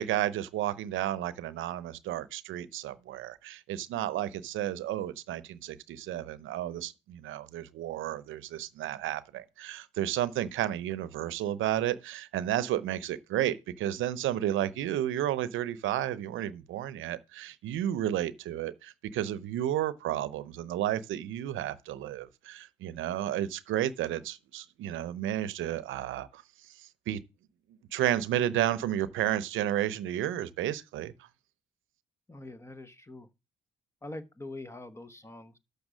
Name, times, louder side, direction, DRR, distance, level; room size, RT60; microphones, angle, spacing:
voice 1, 0.0-26.4 27.1-27.2 27.9-31.1, right 12 dB, 85° right, 0.7 m, -32 dB
voice 2, 32.3-33.3 34.0-35.6, left 2 dB, 15° left, 1.0 m, -44 dB
6.7 x 6.4 x 6.2 m
cardioid pair, 90°, 20 cm